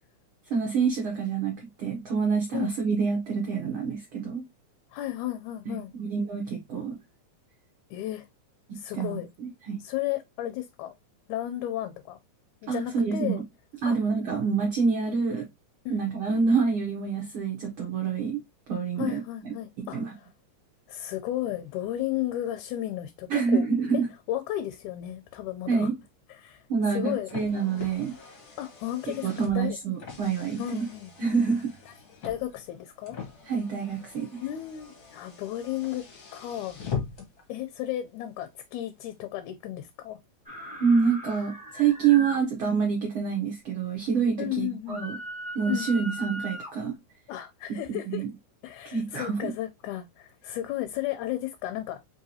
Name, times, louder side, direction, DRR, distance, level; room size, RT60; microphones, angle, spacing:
voice 1, 0.5-4.4 6.0-7.0 8.9-9.8 12.7-13.4 13.8-15.5 15.9-18.4 18.7-20.1 23.3-24.1 25.7-25.9 26.7-28.2 29.0-30.9 31.2-31.7 33.4-34.4 40.8-45.2 45.5-46.9 48.0-48.3 48.8-49.5, right 5 dB, 75° right, 1.2 m, -27 dB
voice 2, 4.9-5.9 7.9-8.3 8.7-9.3 9.8-10.9 11.3-12.2 12.6-13.4 13.9-14.0 15.9-16.1 19.0-20.3 20.9-23.7 24.3-25.9 26.3-26.6 26.9-27.3 28.6-29.8 30.6-31.1 32.2-33.2 34.4-36.0 36.3-36.8 37.5-40.2 42.2-42.3 44.4-45.1 45.7-45.9 47.3-48.3 48.6-52.0, left 13 dB, 85° left, 1.9 m, -33 dB
Car, 26.8-37.5, left 6 dB, 65° left, 0.9 m, -42 dB
sound 1, 40.5-42.4 44.9-46.7, right 1 dB, 5° right, 0.7 m, -38 dB
4.7 x 2.8 x 2.7 m
omnidirectional pair, 3.4 m